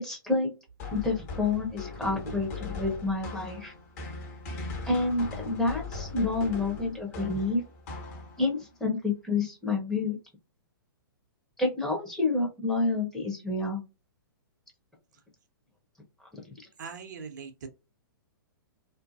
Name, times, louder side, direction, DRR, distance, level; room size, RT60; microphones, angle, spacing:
voice 1, 0.0-0.5 0.9-3.7 4.9-7.6 8.4-10.2 11.6-13.8, left 3 dB, 5° left, 0.7 m, -28 dB
sound 1, 0.8-8.6, left 3 dB, 45° left, 1.1 m, -39 dB
voice 2, 16.8-17.7, right 6 dB, 55° right, 0.6 m, -41 dB
2.6 x 2.5 x 2.4 m
figure-of-eight pair, 115°, 12 cm